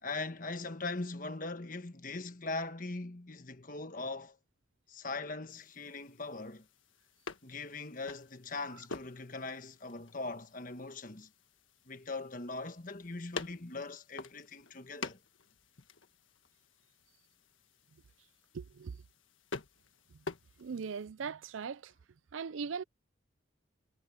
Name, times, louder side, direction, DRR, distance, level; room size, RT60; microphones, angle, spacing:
voice 1, 0.0-4.4 4.9-6.7 7.4-11.3 11.9-15.2, left 3 dB, 45° left, 1.4 m, -41 dB
sound 1, 5.5-21.1, left 4 dB, 85° left, 1.5 m, -49 dB
voice 2, 18.5-19.0 20.6-21.9 22.3-22.8, right 6 dB, 80° right, 0.5 m, -39 dB
head